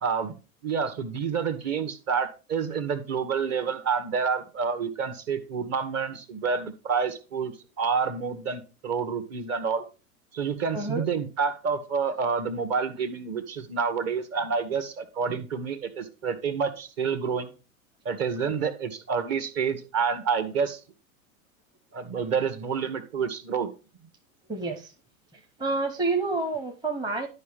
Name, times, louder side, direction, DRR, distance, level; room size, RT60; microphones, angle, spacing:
voice 1, 0.0-0.3 0.6-9.8 10.3-17.5 18.0-20.8 21.9-23.7, right 6 dB, 35° right, 9 dB, 1.4 m, -28 dB
voice 2, 10.7-11.0 18.5-18.6 24.5-24.9 25.6-27.3, right 3 dB, 10° right, 2 dB, 0.9 m, -28 dB
11.0 x 5.1 x 3.5 m, 0.32 s
figure-of-eight pair, 85°, 42 cm